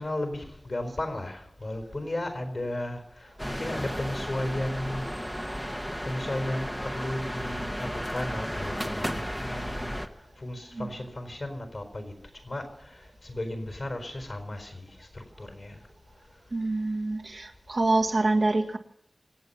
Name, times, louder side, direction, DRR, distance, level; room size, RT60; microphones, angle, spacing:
voice 1, 0.0-3.3 3.6-5.1 6.0-10.0 10.4-12.1 12.4-15.8, left 1 dB, 55° left, 5 dB, 4.5 m, -34 dB
sound 1, 3.4-10.1, equal, 5° left, 1.3 m, -34 dB
voice 2, 16.5-18.8, right 2 dB, 60° right, 3 dB, 1.7 m, -26 dB
25.5 x 8.7 x 5.6 m, 0.72 s
wide cardioid pair, 60°, 0 cm